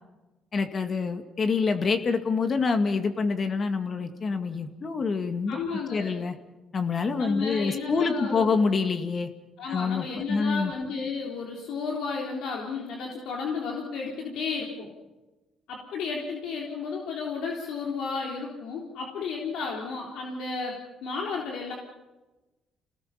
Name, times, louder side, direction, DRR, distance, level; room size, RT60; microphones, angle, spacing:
voice 1, 0.5-5.6 5.9-6.4 6.7-9.3 9.7-10.7, left 4 dB, 45° left, 7 dB, 2.1 m, -26 dB
voice 2, 5.5-6.2 7.2-8.5 9.6-14.9 15.7-21.7, left 4 dB, 80° left, -1 dB, 3.6 m, -33 dB
27.5 x 19.0 x 5.8 m, 1.1 s
cardioid pair, 80°, 0 cm